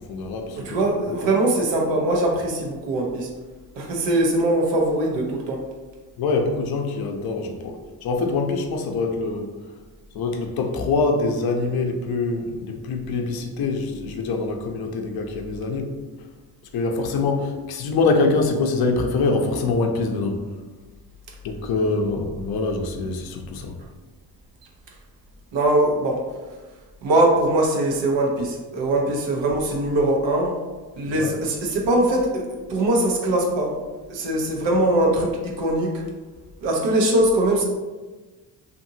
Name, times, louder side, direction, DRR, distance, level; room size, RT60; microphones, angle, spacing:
voice 1, 0.0-0.8 1.1-1.2 6.2-9.5 10.1-15.9 16.7-20.4 21.4-23.8 31.0-31.3, left 3 dB, 60° left, 3 dB, 0.5 m, -24 dB
voice 2, 0.6-3.3 3.7-5.6 25.5-26.2 27.0-30.5 31.0-32.4 32.7-33.7 34.1-36.0 36.6-37.6, right 1 dB, 80° right, 0 dB, 0.8 m, -21 dB
2.7 x 2.5 x 2.6 m, 1.3 s
cardioid pair, 75°, 43 cm